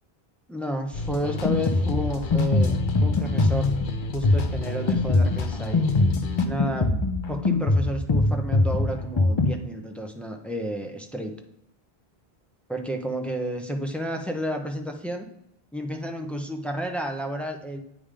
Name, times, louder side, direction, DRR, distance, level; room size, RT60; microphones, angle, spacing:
voice 1, 0.5-3.7 4.1-5.9 6.4-6.9 7.3-11.3 12.7-15.3 15.7-17.8, equal, ahead, 3 dB, 0.7 m, -31 dB
sound 1, 0.9-6.5, left 2 dB, 55° left, 0.8 m, -32 dB
Drum kit, 1.2-9.5, left 3 dB, 35° left, 0.4 m, -23 dB
8.7 x 3.7 x 4.9 m, 0.79 s
omnidirectional pair, 1.1 m